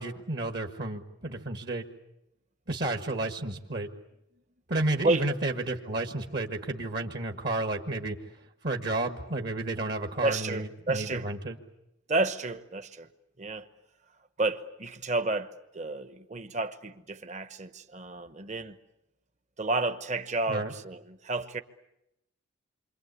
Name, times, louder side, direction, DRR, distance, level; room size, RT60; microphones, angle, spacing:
voice 1, 0.0-1.8 2.7-3.9 4.7-8.2 8.6-11.6 20.5-20.7, right 2 dB, 50° right, 1.6 m, -31 dB
voice 2, 10.2-11.3 12.1-13.1 13.4-13.7 14.4-18.8 19.6-21.6, right 2 dB, 35° right, 1.1 m, -31 dB
28.5 x 25.0 x 8.3 m
head